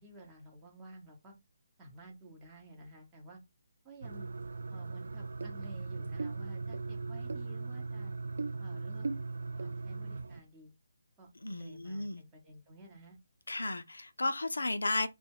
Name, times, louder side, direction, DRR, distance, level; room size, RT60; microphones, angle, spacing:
voice 1, 0.0-1.3 1.8-3.4 3.8-4.3 4.7-8.1 8.6-9.1 9.5-10.7 11.2-13.2, right 1 dB, 15° right, 0.8 m, -53 dB
sound 1, 4.0-10.4, right 3 dB, 60° right, 0.3 m, -38 dB
voice 2, 11.4-12.2 13.5-15.1, left 2 dB, 70° left, 0.4 m, -34 dB
2.2 x 2.2 x 3.4 m
figure-of-eight pair, 145°, 0 cm